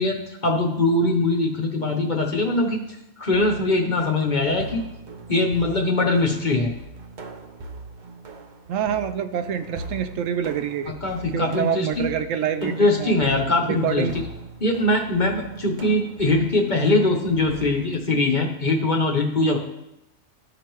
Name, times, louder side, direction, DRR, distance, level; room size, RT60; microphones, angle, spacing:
voice 1, 0.0-2.8 3.2-4.8 5.3-6.7 11.0-12.1 12.6-14.1 14.6-19.6, left 2 dB, 40° left, 1 dB, 0.9 m, -22 dB
sound 1, 3.3-18.0, right 3 dB, 45° right, 0.7 m, -40 dB
voice 2, 8.7-10.9 11.3-13.2 13.7-14.2, right 8 dB, 70° right, 9 dB, 0.9 m, -26 dB
13.5 x 5.0 x 3.0 m, 0.85 s
omnidirectional pair, 1.4 m